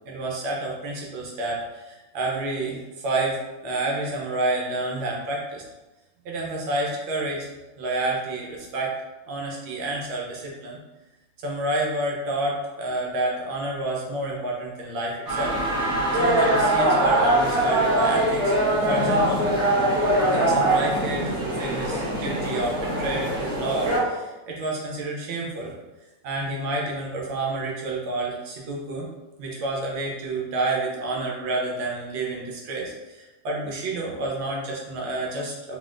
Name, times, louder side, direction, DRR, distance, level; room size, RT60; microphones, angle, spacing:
voice 1, 0.0-5.6 6.2-7.5 7.8-8.9 9.2-10.8 11.4-15.5 16.1-18.5 18.9-19.4 20.3-25.7 26.2-29.1 29.4-35.8, right 2 dB, 75° right, -2 dB, 1.6 m, -29 dB
sound 1, 15.3-24.0, right 1 dB, 55° right, 1.3 m, -22 dB
3.9 x 3.7 x 2.5 m, 1.1 s
omnidirectional pair, 2.1 m